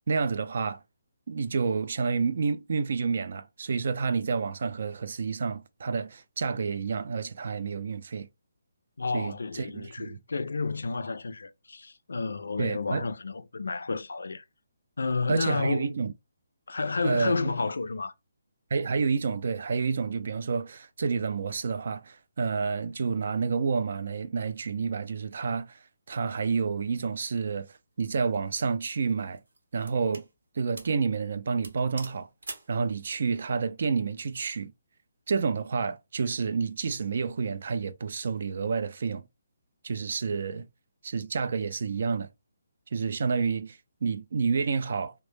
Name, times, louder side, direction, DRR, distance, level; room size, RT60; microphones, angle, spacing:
voice 1, 0.1-0.8 1.3-8.3 9.1-10.2 12.6-13.1 15.3-16.1 17.0-17.5 18.7-25.8 26.1-29.4 29.7-30.3 30.6-32.3 32.7-34.7 35.3-39.2 39.8-40.7 41.0-42.3 42.9-45.1, right 5 dB, 55° right, 0.3 m, -29 dB
voice 2, 9.0-14.4 15.0-15.9 16.7-18.1, left 4 dB, 85° left, 0.3 m, -31 dB
sound 1, 28.1-28.4 29.1-30.3 30.8-31.0 31.3-31.4 31.6-32.8, right 3 dB, 80° right, 0.8 m, -44 dB
2.1 x 2.1 x 3.0 m
hypercardioid pair, 170°, 0 cm